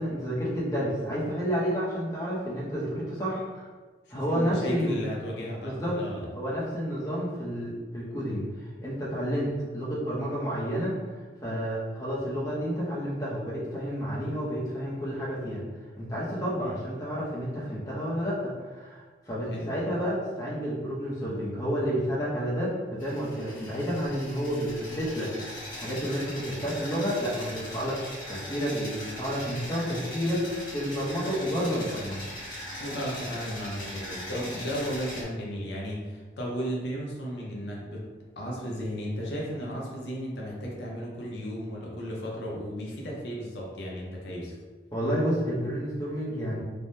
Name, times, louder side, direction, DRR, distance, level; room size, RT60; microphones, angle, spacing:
voice 1, 0.0-3.7 4.1-5.0 5.6-6.0 6.3-8.4 8.8-11.0 11.4-15.6 16.0-25.3 25.7-28.0 28.3-32.2 44.9-46.6, equal, 20° left, -7 dB, 0.6 m, -30 dB
voice 2, 4.1-6.3 16.6-16.8 19.5-19.7 32.8-38.0 38.4-44.5, equal, 75° left, -3 dB, 0.6 m, -34 dB
sound 1, 23.0-35.2, left 1 dB, 50° left, 1.3 m, -40 dB
3.4 x 2.1 x 2.6 m, 1.4 s
head